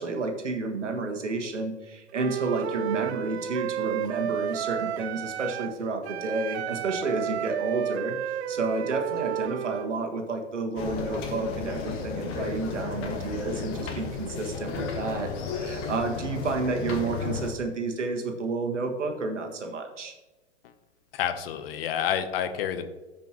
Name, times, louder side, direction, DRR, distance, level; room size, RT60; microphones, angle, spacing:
voice 1, 0.0-20.1, right 3 dB, 80° right, 3 dB, 1.6 m, -31 dB
Wind instrument woodwind instrument, 2.1-5.8 6.0-9.9, right 11 dB, 60° right, 0.6 m, -32 dB
sound 1, 10.8-17.5, left 5 dB, 35° left, 1.5 m, -33 dB
voice 2, 21.1-22.9, left 9 dB, 55° left, 10 dB, 0.9 m, -29 dB
13.5 x 5.2 x 3.0 m, 1.1 s
hypercardioid pair, 110°, 36 cm